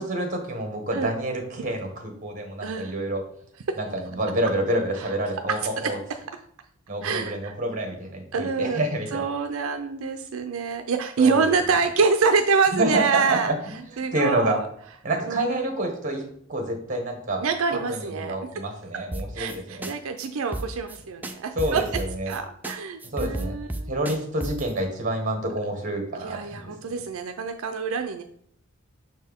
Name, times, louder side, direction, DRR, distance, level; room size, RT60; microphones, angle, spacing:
voice 1, 0.0-3.2 3.8-6.0 6.9-9.2 11.2-11.4 12.8-14.6 15.0-17.5 17.9-19.9 21.5-22.3 23.1-23.6 23.9-26.7, right 1 dB, 40° right, 3 dB, 1.4 m, -28 dB
voice 2, 2.6-2.9 3.7-3.8 5.0-5.1 5.5-5.9 7.0-7.5 8.3-8.8 9.1-13.5 14.0-14.7 15.3-15.6 17.4-18.4 19.4-21.8 22.3-23.9 26.2-28.2, right 5 dB, 85° right, 6 dB, 0.5 m, -26 dB
sound 1, 19.1-19.6 19.8-19.9 20.2-20.3 20.5-21.0 21.2-22.4 22.6-22.8 23.0-24.7, right 1 dB, 10° right, 0.4 m, -32 dB
6.3 x 4.4 x 3.5 m, 0.65 s
head